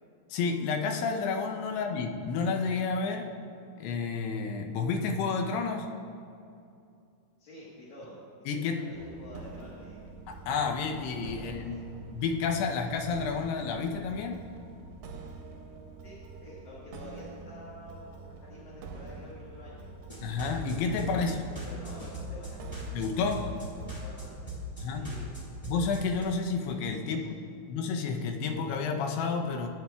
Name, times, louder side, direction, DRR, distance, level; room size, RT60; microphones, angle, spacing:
voice 1, 0.3-3.3 3.8-5.9 8.5-8.9 10.3-11.8 12.1-14.4 20.2-21.4 22.9-23.4 24.8-25.1 25.6-27.2 27.7-29.7, left 5 dB, 90° left, 3 dB, 2.8 m, -30 dB
voice 2, 7.4-10.0 11.4-12.0 16.0-19.9 21.0-22.6 23.1-24.5 24.9-25.3 27.0-27.4, left 1 dB, 60° left, -7 dB, 2.4 m, -49 dB
sound 1, 8.9-24.0, right 3 dB, 80° right, 2.5 m, -46 dB
sound 2, 20.1-26.2, right 1 dB, 25° left, 0.8 m, -40 dB
15.0 x 8.7 x 2.3 m, 2.5 s
omnidirectional pair, 4.5 m